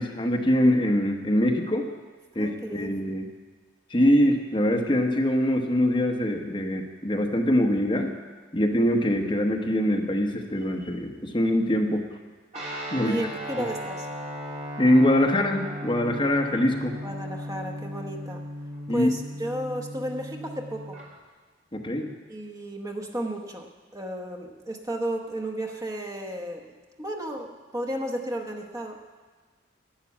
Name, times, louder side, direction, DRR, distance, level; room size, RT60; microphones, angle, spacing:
voice 1, 0.0-1.9 2.3-3.3 3.9-8.1 8.5-12.0 12.9-13.2 13.5-13.6 14.8-17.0 18.9-19.1 21.7-22.1, left 1 dB, 25° left, 2 dB, 1.1 m, -23 dB
voice 2, 2.4-3.0 13.0-14.1 17.0-18.4 18.9-21.0 22.3-23.7 23.9-26.7 27.0-29.0, right 1 dB, 15° right, 2 dB, 1.0 m, -33 dB
Guitar, 12.5-21.0, equal, 35° right, 3.2 m, -36 dB
11.5 x 9.8 x 8.5 m, 1.4 s
head